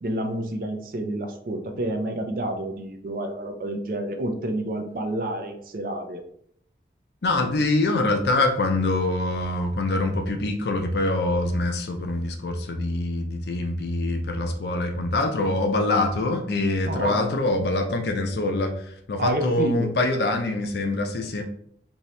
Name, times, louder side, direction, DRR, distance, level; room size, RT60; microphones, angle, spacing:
voice 1, 0.0-6.2 16.8-17.2 19.2-19.9, right 1 dB, 50° right, 5 dB, 0.4 m, -29 dB
voice 2, 7.2-21.4, left 2 dB, 70° left, 5 dB, 0.5 m, -24 dB
2.7 x 2.7 x 3.1 m, 0.66 s
head